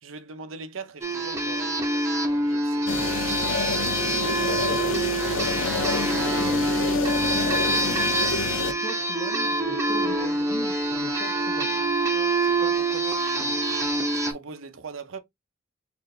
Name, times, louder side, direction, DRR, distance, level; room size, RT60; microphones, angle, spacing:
voice 1, 0.0-2.9 3.4-3.5 12.4-13.7 14.1-15.2, right 4 dB, 75° right, 0.6 m, -41 dB
sound 1, 1.0-14.3, right 2 dB, 15° right, 0.8 m, -25 dB
sound 2, 2.9-8.7, left 4 dB, 75° left, 0.6 m, -28 dB
voice 2, 4.4-4.8 6.3-6.7 7.0-11.8, left 2 dB, 35° left, 1.2 m, -40 dB
4.3 x 2.6 x 3.2 m
head